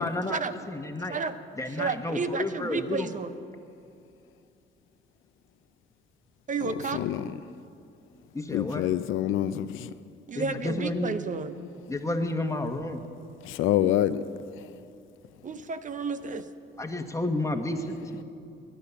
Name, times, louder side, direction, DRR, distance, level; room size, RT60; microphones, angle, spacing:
voice 1, 0.0-1.2 1.6-3.1 8.3-8.9 10.3-11.2 11.9-13.0 16.8-18.2, left 2 dB, 15° left, 5 dB, 1.4 m, -31 dB
voice 2, 1.7-3.3 6.5-7.0 10.3-11.6 15.4-16.5, right 4 dB, 40° right, 11 dB, 0.8 m, -31 dB
voice 3, 8.5-9.9 13.4-14.2, left 12 dB, 85° left, 13 dB, 0.6 m, -26 dB
19.0 x 10.5 x 7.1 m, 2.5 s
cardioid pair, 90°, 20 cm